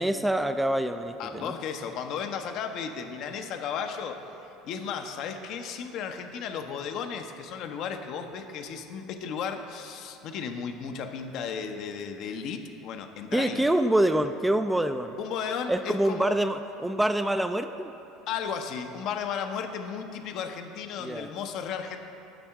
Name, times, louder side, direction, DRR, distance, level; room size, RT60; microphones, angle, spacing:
voice 1, 0.0-1.6 13.3-15.1 15.7-17.9 21.0-21.3, right 1 dB, 5° right, 9 dB, 0.3 m, -26 dB
voice 2, 1.2-13.6 15.2-16.4 18.3-22.0, left 6 dB, 55° left, 6 dB, 0.6 m, -34 dB
10.0 x 3.5 x 6.4 m, 2.8 s
figure-of-eight pair, 70°, 0 cm